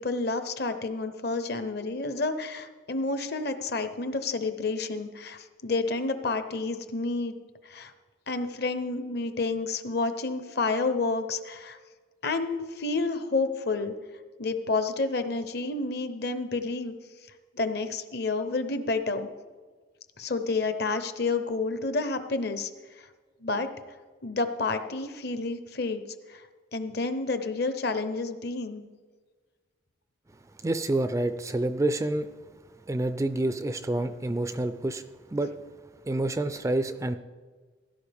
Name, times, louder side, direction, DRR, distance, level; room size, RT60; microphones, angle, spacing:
voice 1, 0.0-7.3 7.6-7.9 8.3-11.8 12.2-13.9 14.4-16.9 17.5-19.3 20.2-22.7 23.0-23.1 23.4-23.7 24.2-26.0 26.3-26.4 26.7-28.8, left 3 dB, 55° left, 9 dB, 0.8 m, -29 dB
voice 2, 30.6-32.3 32.9-35.0 35.3-35.5 36.1-37.2, right 1 dB, 15° right, 10 dB, 0.3 m, -28 dB
16.5 x 11.0 x 3.5 m, 1.4 s
head